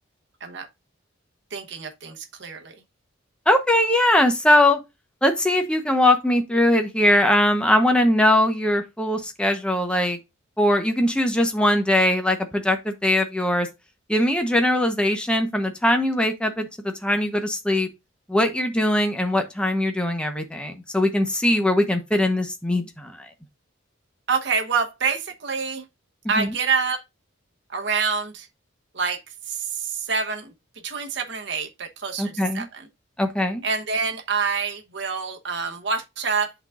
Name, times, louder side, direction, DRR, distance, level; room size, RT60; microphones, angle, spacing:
voice 1, 1.5-2.7 24.3-25.8 26.3-27.0 27.7-28.5 28.9-29.2 29.5-30.5 30.8-32.9 33.6-36.5, right 5 dB, 55° right, 1.0 m, -26 dB
voice 2, 3.5-4.8 5.2-10.2 10.6-13.7 14.1-17.9 18.3-23.3 26.4-26.5 32.2-32.6 33.2-33.6, left 1 dB, 5° left, 0.9 m, -21 dB
11.0 x 4.0 x 2.4 m
head